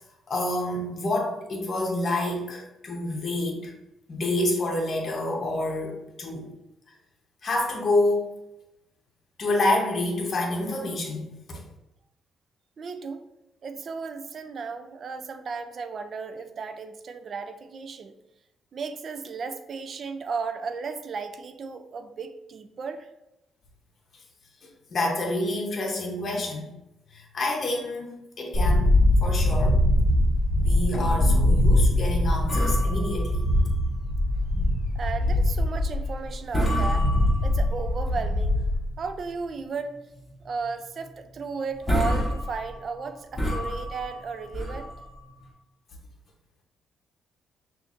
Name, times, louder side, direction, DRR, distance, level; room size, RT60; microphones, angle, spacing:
voice 1, 0.3-3.7 4.1-6.5 7.4-8.4 9.4-11.6 24.6-26.7 27.1-28.9 29.2-29.8 30.6-33.8, left 2 dB, 45° left, 0 dB, 0.8 m, -28 dB
voice 2, 12.8-13.2 13.6-18.1 18.7-23.1 34.9-37.1 37.4-38.7 39.0-40.0 40.4-44.9, right 5 dB, 50° right, 8 dB, 0.4 m, -35 dB
sound 1, 28.5-38.8, left 1 dB, 30° left, 1.2 m, -22 dB
sound 2, 30.9-36.2, right 2 dB, 65° left, 0.4 m, -34 dB
sound 3, 32.5-34.3 34.6-34.8 35.3-35.5 36.1-36.3 36.5-37.9 38.3-39.2 39.6-39.7 40.2-40.4 40.6-40.7 41.4-41.5 41.7-45.4, equal, 10° left, 1.4 m, -29 dB
5.8 x 2.5 x 2.5 m, 0.90 s
cardioid pair, 90°, 0 cm